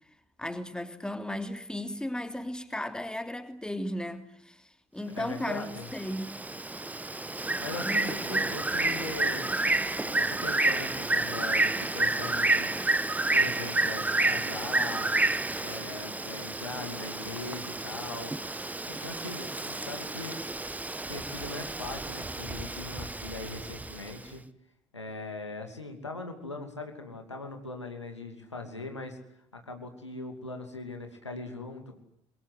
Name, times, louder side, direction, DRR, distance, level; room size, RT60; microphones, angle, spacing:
voice 1, 0.4-5.7 5.9-6.4 7.8-8.4, left 1 dB, 5° left, 3.2 m, -35 dB
voice 2, 5.0-5.9 7.6-9.5 10.0-12.7 13.3-15.1 15.6-18.4 18.9-20.4 21.1-24.4 24.9-29.2 29.5-32.0, left 3 dB, 85° left, 2.7 m, -40 dB
Bird, 5.4-24.1, right 2 dB, 10° right, 1.2 m, -30 dB
28.0 x 23.0 x 8.2 m
figure-of-eight pair, 55°, 14 cm